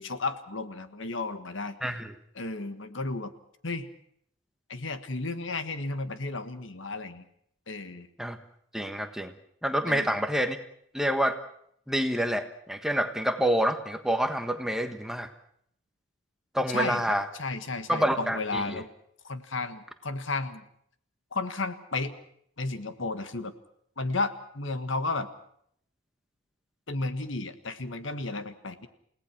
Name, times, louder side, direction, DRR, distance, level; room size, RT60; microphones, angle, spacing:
voice 1, 0.0-2.0 2.3-3.3 3.6-3.9 4.7-7.2 7.7-8.1 9.9-10.2 16.7-18.9 19.2-20.6 21.3-22.1 22.6-23.5 24.0-25.3 26.9-28.9, left 3 dB, 70° left, 10 dB, 1.6 m, -33 dB
voice 2, 1.8-2.1 8.2-8.4 8.7-9.3 9.6-10.6 10.9-11.4 11.9-15.3 16.5-17.2 17.9-18.8, equal, ahead, 7 dB, 1.4 m, -27 dB
29.5 x 18.0 x 6.1 m, 0.68 s
head